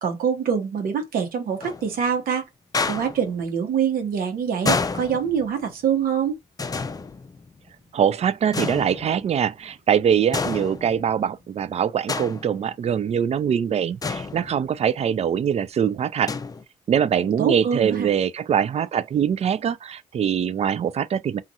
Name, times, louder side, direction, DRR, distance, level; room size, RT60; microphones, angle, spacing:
voice 1, 0.0-2.5 2.8-6.4 17.2-18.1, right 7 dB, 75° right, 1.0 m, -25 dB
sound 1, 1.6-2.1 2.7-3.3 4.7-5.7 6.6-7.7 8.5-9.4 10.3-11.2 12.1-12.7 14.0-14.9 16.3-16.6, left 4 dB, 25° left, 0.4 m, -29 dB
voice 2, 7.9-16.3 16.9-21.4, right 8 dB, 45° right, 0.4 m, -23 dB
2.6 x 2.4 x 2.7 m
supercardioid pair, 55°, 15 cm